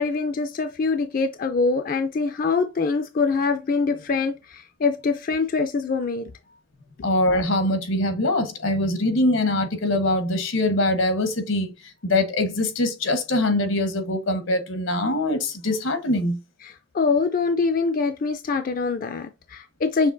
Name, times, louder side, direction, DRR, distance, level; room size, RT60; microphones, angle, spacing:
voice 1, 0.0-6.3 16.6-20.1, left 4 dB, 45° left, 0.4 m, -24 dB
voice 2, 7.0-11.7 12.0-16.4, left 1 dB, 80° left, 1.1 m, -23 dB
6.5 x 2.9 x 2.5 m
head